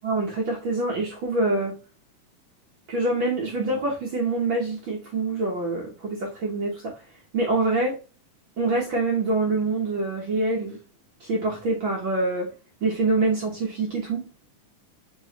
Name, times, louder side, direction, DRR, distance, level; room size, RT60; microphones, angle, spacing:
voice 1, 0.0-1.7 2.9-6.9 7.3-8.0 8.6-10.8 11.2-12.5 12.8-14.2, right 2 dB, 65° right, 1.2 m, -25 dB
5.4 x 3.0 x 3.0 m
omnidirectional pair, 3.7 m